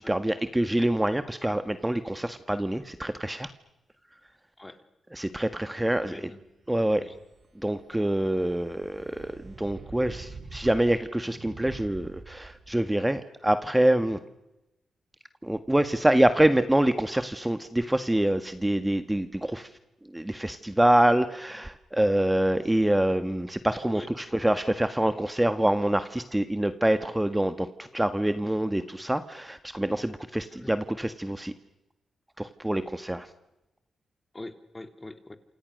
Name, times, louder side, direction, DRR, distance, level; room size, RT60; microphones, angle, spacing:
voice 1, 0.0-3.5 5.1-6.2 6.7-7.0 7.6-14.2 15.4-19.7 20.1-31.5 32.4-33.3, right 1 dB, 10° right, 10 dB, 1.7 m, -26 dB
voice 2, 6.0-6.4 6.8-7.2 23.9-24.1 30.5-30.7 34.3-35.4, left 2 dB, 20° left, 9 dB, 3.2 m, -43 dB
sound 1, 6.5-12.9, right 4 dB, 55° right, 6.4 m, -46 dB
28.0 x 28.0 x 6.6 m, 0.94 s
cardioid pair, 55°, 0 cm